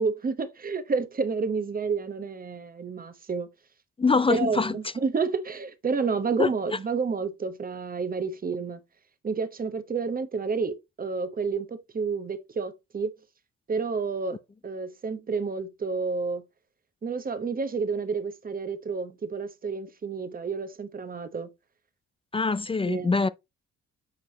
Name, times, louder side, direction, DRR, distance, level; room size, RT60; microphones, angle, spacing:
voice 1, 0.0-3.5 4.3-8.8 9.2-13.1 13.7-16.4 17.0-21.5 22.9-23.3, right 5 dB, 30° right, 1.0 m, -30 dB
voice 2, 4.0-4.8 6.4-6.5 22.3-23.3, left 4 dB, 20° left, 0.4 m, -23 dB
7.5 x 4.7 x 2.8 m
cardioid pair, 90°, 30 cm